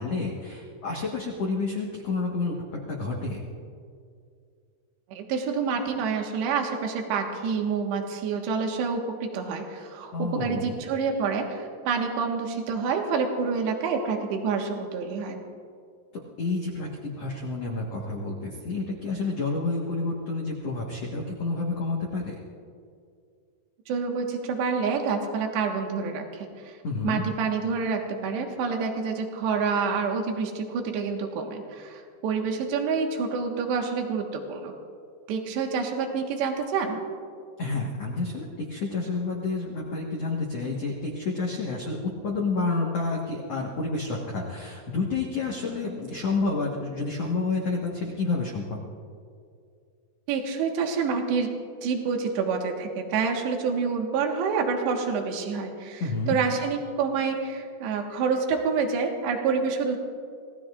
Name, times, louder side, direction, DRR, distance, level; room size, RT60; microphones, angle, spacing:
voice 1, 0.0-2.5 2.9-3.4 10.1-10.8 16.4-22.3 26.8-27.2 37.6-42.0 42.2-48.8 56.0-56.4, left 3 dB, 85° left, -3 dB, 1.4 m, -29 dB
voice 2, 5.1-15.4 23.9-26.7 27.0-34.7 35.3-37.0 50.3-51.5 51.8-60.0, right 5 dB, 75° right, 2 dB, 3.4 m, -28 dB
26.0 x 18.0 x 2.5 m, 2.3 s
omnidirectional pair, 5.3 m